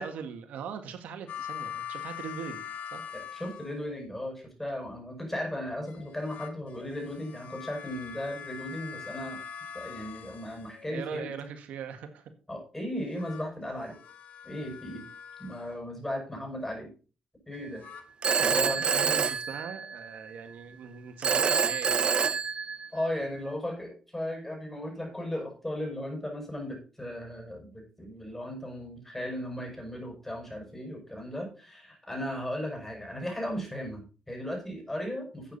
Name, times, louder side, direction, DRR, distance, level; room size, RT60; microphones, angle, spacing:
voice 1, 0.0-2.6 2.9-3.1 10.9-12.3 18.4-22.1, right 7 dB, 90° right, 8 dB, 1.7 m, -40 dB
sound 1, 1.3-4.1 5.9-11.1 13.0-15.8 17.5-18.0, left 8 dB, 80° left, 1.7 m, -43 dB
voice 2, 3.1-9.4 9.7-11.3 12.5-14.0 14.4-15.1 15.4-16.9 17.5-17.8 18.4-18.8 22.9-35.5, left 1 dB, 10° left, 2 dB, 6.6 m, -36 dB
Telephone, 18.2-20.2 21.2-23.2, right 6 dB, 45° right, 0.5 m, -27 dB
12.0 x 8.7 x 4.2 m, 0.36 s
cardioid pair, 100°, 2 cm